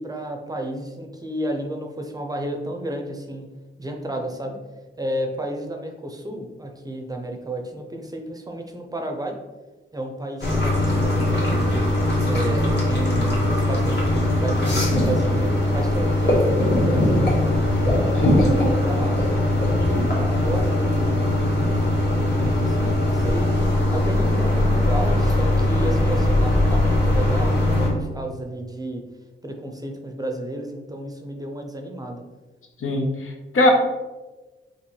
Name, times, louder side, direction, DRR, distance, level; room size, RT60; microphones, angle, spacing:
voice 1, 0.0-3.5 3.8-4.6 5.0-9.4 9.9-11.8 12.2-17.2 17.8-19.2 19.6-23.5 23.9-29.0 29.4-32.2, right 1 dB, 20° right, 2 dB, 0.5 m, -32 dB
sound 1, 10.4-27.9, left 1 dB, 55° left, 1.5 m, -20 dB
voice 2, 32.8-33.7, left 1 dB, 80° left, 2 dB, 0.8 m, -21 dB
5.2 x 3.0 x 3.1 m, 1.2 s
wide cardioid pair, 150°, 21 cm